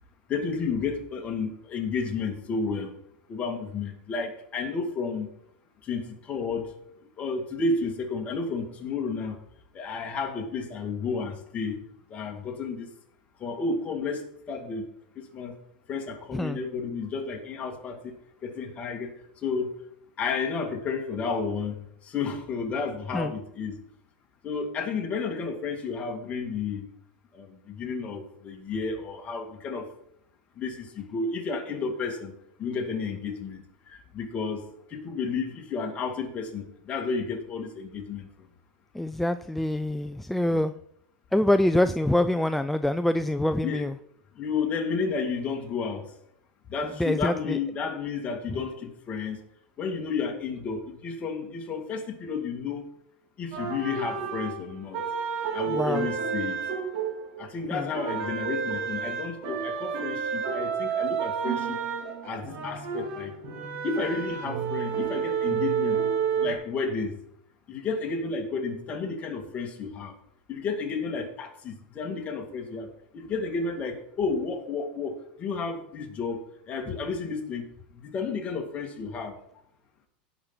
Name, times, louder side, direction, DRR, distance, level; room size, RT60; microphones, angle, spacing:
voice 1, 0.3-3.0 3.3-5.3 5.8-6.7 7.2-9.4 9.7-11.8 12.1-12.9 13.4-14.9 15.2-15.5 15.9-18.1 18.4-19.8 20.2-23.8 24.4-26.9 27.3-29.9 30.6-32.3 32.6-34.6 34.9-38.5 40.5-40.6 43.6-43.8 44.4-46.1 46.7-49.4 49.8-52.9 53.4-55.0 55.5-56.6 57.4-61.8 62.2-63.3 63.8-66.0 66.4-67.2 67.7-70.1 70.5-77.7 77.9-79.6, left 4 dB, 30° left, 3 dB, 2.2 m, -32 dB
voice 2, 38.9-40.7 41.3-44.0 47.0-47.6 55.7-56.1 57.7-57.9, left 1 dB, 5° left, 10 dB, 0.3 m, -25 dB
sound 1, 53.5-57.6 57.9-66.5, right 6 dB, 60° right, 2.7 m, -30 dB
17.0 x 6.0 x 4.0 m, 0.72 s
supercardioid pair, 130°, 5 cm